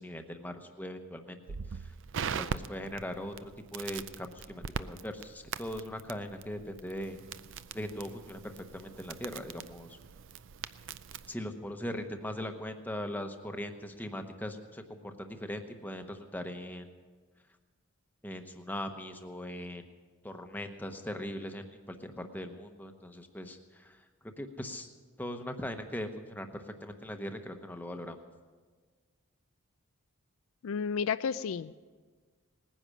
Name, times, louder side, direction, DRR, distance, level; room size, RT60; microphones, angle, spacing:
voice 1, 0.0-1.4 1.7-1.9 2.4-7.2 7.7-10.0 11.3-16.9 18.2-19.8 20.2-24.0 24.4-24.9 25.2-28.2, left 1 dB, 10° left, 6 dB, 0.9 m, -40 dB
Crackle, 1.5-11.3, right 6 dB, 55° right, 0.5 m, -41 dB
voice 2, 30.6-31.7, left 6 dB, 65° left, 13 dB, 0.3 m, -32 dB
19.5 x 10.0 x 6.4 m, 1.5 s
head